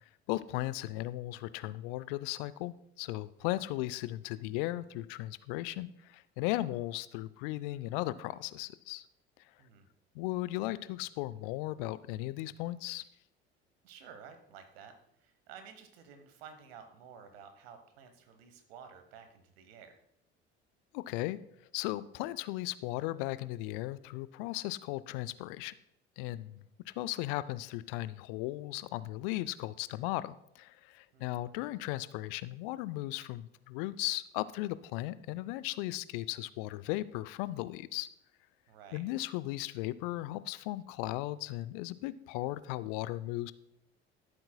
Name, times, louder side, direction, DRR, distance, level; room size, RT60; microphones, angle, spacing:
voice 1, 0.3-9.0 10.1-13.0 20.9-21.4 21.7-25.7 26.2-38.1 38.9-43.5, left 17 dB, 60° left, 17 dB, 0.5 m, -36 dB
voice 2, 13.8-20.0 31.1-31.4 38.7-39.0, right 7 dB, 70° right, 8 dB, 1.2 m, -53 dB
13.5 x 7.7 x 2.3 m, 0.77 s
figure-of-eight pair, 60°, 31 cm